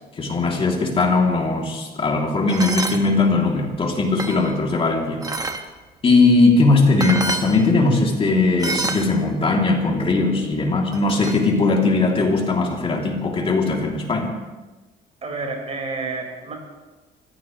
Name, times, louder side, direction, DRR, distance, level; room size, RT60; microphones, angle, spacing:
voice 1, 0.2-5.2 6.0-14.3, left 3 dB, 35° left, 0 dB, 3.1 m, -19 dB
sound 1, 2.5-3.0 3.7-4.6 5.2-5.6 6.7-6.8 7.0-7.5 8.6-9.1 10.9-11.4, right 3 dB, 20° right, 1.4 m, -27 dB
voice 2, 15.2-16.6, right 3 dB, 40° right, 0 dB, 5.4 m, -29 dB
25.5 x 16.0 x 3.3 m, 1.2 s
cardioid pair, 110°, 17 cm